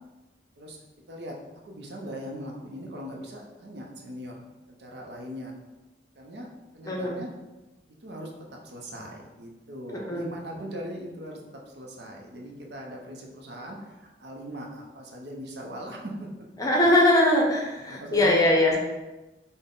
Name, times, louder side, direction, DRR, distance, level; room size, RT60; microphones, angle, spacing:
voice 1, 1.6-4.5 4.8-5.5 6.2-6.5 6.7-7.3 8.0-8.3 8.6-16.3 17.9-18.8, equal, 70° right, 0 dB, 0.6 m, -39 dB
voice 2, 9.9-10.3 16.6-18.7, left 1 dB, 20° left, -2 dB, 0.6 m, -21 dB
3.8 x 2.1 x 3.7 m, 1.1 s
head